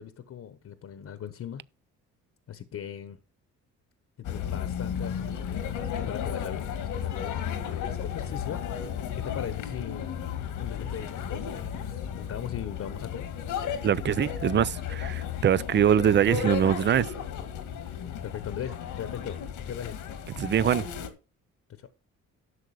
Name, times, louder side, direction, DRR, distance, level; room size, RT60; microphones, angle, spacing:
voice 1, 0.0-1.6 2.5-3.2 4.3-10.1 10.4-13.3 18.2-20.0 21.7-21.9, left 9 dB, 55° left, 1.1 m, -39 dB
sound 1, 4.2-21.1, left 8 dB, 85° left, 1.7 m, -34 dB
voice 2, 13.8-17.1 20.4-20.9, right 9 dB, 35° right, 0.5 m, -23 dB
11.5 x 6.6 x 4.9 m
cardioid pair, 90°, 30 cm